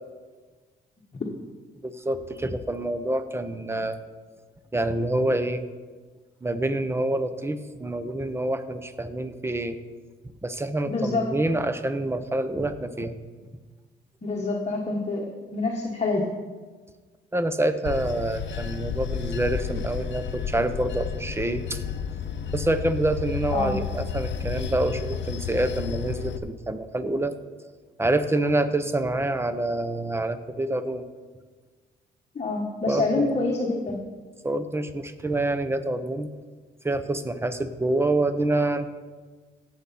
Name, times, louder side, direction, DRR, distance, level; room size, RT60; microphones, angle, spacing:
voice 1, 1.8-4.0 4.7-5.6 6.4-9.8 10.4-13.1 17.3-21.8 22.5-27.3 28.0-31.0 32.9-33.3 34.4-36.3 36.8-38.9, right 2 dB, 10° right, 10 dB, 0.8 m, -27 dB
voice 2, 10.9-11.4 14.2-16.3 23.5-23.7 32.3-34.0, left 3 dB, 35° left, -1 dB, 1.4 m, -26 dB
Bell / Train, 17.8-26.4, left 7 dB, 65° left, 0.8 m, -32 dB
16.0 x 7.0 x 4.2 m, 1.4 s
cardioid pair, 90°, 20 cm